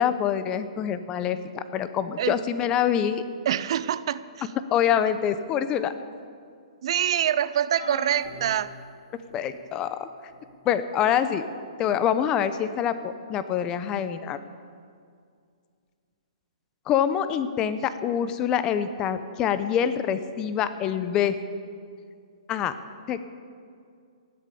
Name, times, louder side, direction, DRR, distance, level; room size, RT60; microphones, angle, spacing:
voice 1, 0.0-3.2 4.7-5.9 9.3-10.1 10.6-11.4 11.8-14.4 16.9-21.3 22.5-22.7 23.1-23.2, left 9 dB, 20° left, 12 dB, 0.7 m, -25 dB
voice 2, 3.5-4.5 6.8-8.7, right 10 dB, 50° right, 17 dB, 0.5 m, -25 dB
sound 1, 7.7-9.5 10.3-10.5 11.8-11.9, left 1 dB, 55° left, 3.6 m, -43 dB
15.5 x 11.5 x 6.9 m, 2.2 s
hypercardioid pair, 160°, 4 cm